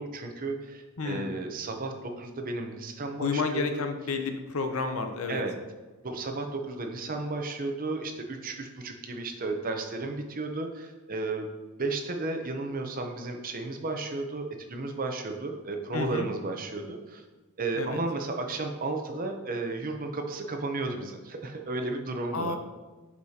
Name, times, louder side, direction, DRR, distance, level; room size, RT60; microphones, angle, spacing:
voice 1, 0.0-3.8 5.3-5.6 6.0-11.5 11.8-17.2 17.6-22.6, right 3 dB, 40° right, 4 dB, 0.7 m, -33 dB
voice 2, 1.0-1.3 3.2-5.4 15.9-16.3 17.8-18.0 22.3-22.6, left 4 dB, 65° left, 6 dB, 0.7 m, -30 dB
8.4 x 4.8 x 2.8 m, 1.2 s
head